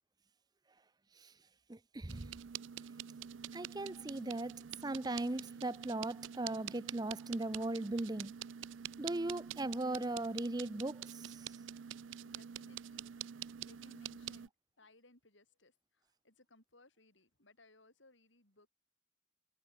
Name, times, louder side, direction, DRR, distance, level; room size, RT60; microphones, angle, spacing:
voice 1, 1.7-2.3 3.5-8.3 9.0-11.6, right 2 dB, 20° right, 0.6 m, -38 dB
sound 1, 2.1-14.5, right 9 dB, 80° right, 0.4 m, -47 dB
voice 2, 12.2-14.5 14.8-18.7, left 2 dB, 75° left, 7.9 m, -66 dB
head